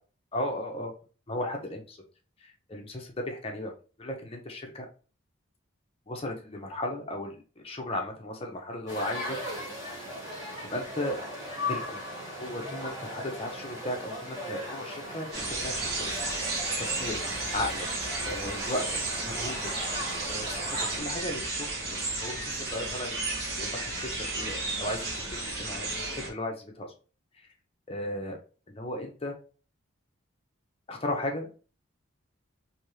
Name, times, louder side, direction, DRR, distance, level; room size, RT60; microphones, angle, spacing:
voice 1, 0.3-0.9 1.3-2.0 2.4-3.7 4.0-4.9 6.1-9.4 10.7-11.2 11.7-12.0 12.4-16.5 16.8-17.2 17.5-17.9 18.2-19.7 20.3-20.7 21.0-23.1 23.5-25.1 25.4-25.9 26.1-26.9 27.4-27.5 27.9-28.4 28.7-29.3 30.9-31.5, left 1 dB, 25° left, 2 dB, 0.7 m, -35 dB
sound 1, 8.9-21.0, left 1 dB, 15° right, 1.5 m, -38 dB
sound 2, 15.3-26.3, right 2 dB, 50° right, 1.2 m, -33 dB
3.5 x 2.7 x 3.1 m, 0.36 s
head